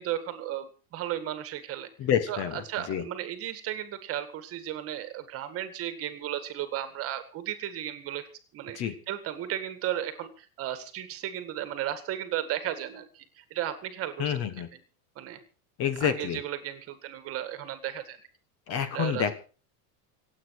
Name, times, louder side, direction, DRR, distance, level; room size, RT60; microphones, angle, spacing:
voice 1, 0.0-1.9 2.3-8.3 8.5-14.8 15.2-15.4 16.0-18.2 18.9-19.3, right 11 dB, 30° right, 11 dB, 1.9 m, -35 dB
voice 2, 2.0-2.6 2.9-3.0 8.7-8.9 14.2-14.7 15.8-16.4 18.7-19.3, left 9 dB, 30° left, 12 dB, 1.6 m, -28 dB
26.0 x 8.9 x 4.8 m, 0.37 s
supercardioid pair, 165°, 44 cm